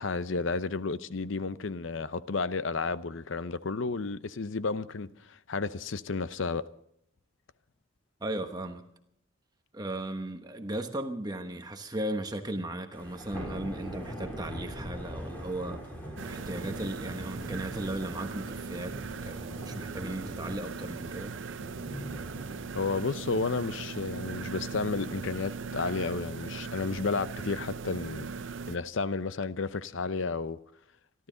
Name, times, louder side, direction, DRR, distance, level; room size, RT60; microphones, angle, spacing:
voice 1, 0.0-6.6 22.7-28.3 28.7-30.6, left 4 dB, 65° left, 0.6 m, -32 dB
voice 2, 8.2-8.8 9.7-15.9 16.2-19.0 19.2-21.3, right 1 dB, 20° right, 1.1 m, -36 dB
Thunder / Rain, 12.9-26.9, equal, 10° left, 4.0 m, -43 dB
sound 1, 16.2-28.8, right 5 dB, 65° right, 0.6 m, -39 dB
26.0 x 12.5 x 3.9 m
head